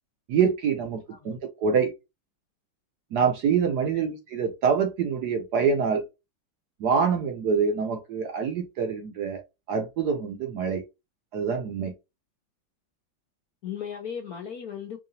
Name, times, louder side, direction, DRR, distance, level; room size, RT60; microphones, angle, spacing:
voice 1, 0.3-1.9 3.1-6.0 6.8-9.4 9.7-10.8 11.3-11.9, right 6 dB, 65° right, 1.0 m, -25 dB
voice 2, 13.6-15.0, left 8 dB, 65° left, 0.9 m, -37 dB
4.7 x 2.4 x 2.7 m
omnidirectional pair, 2.2 m